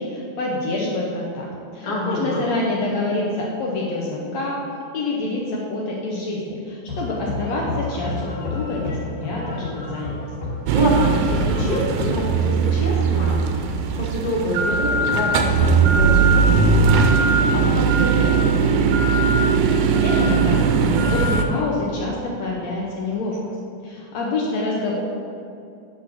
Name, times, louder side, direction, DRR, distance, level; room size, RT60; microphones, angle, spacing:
voice 1, 0.0-1.5 1.7-10.2 20.0-23.4 23.8-25.0, left 2 dB, 70° left, -3 dB, 1.8 m, -27 dB
voice 2, 1.8-2.4 10.7-13.7 14.0-18.4, equal, 35° left, -5 dB, 0.7 m, -26 dB
sound 1, 6.9-12.1, left 2 dB, 85° left, 3.8 m, -30 dB
sound 2, 10.7-21.4, right 5 dB, 80° right, 2.1 m, -19 dB
9.6 x 4.4 x 6.2 m, 2.5 s
omnidirectional pair, 4.0 m